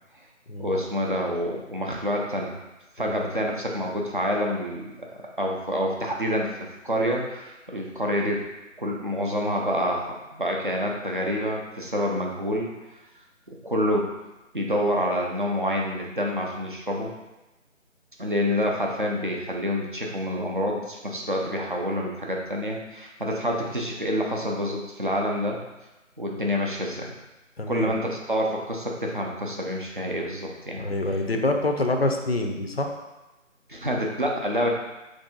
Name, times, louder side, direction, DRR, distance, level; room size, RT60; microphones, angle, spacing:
voice 1, 0.6-2.6 3.0-4.9 5.4-6.5 6.8-8.4 8.8-12.7 13.6-14.1 14.5-17.1 18.2-25.6 26.2-27.1 27.7-30.9 33.7-34.7, equal, 40° right, -1 dB, 0.4 m, -27 dB
voice 2, 3.0-3.3 27.6-27.9 30.8-32.9, left 2 dB, 50° left, 3 dB, 0.4 m, -26 dB
3.5 x 2.6 x 3.7 m, 1.0 s
figure-of-eight pair, 165°, 39 cm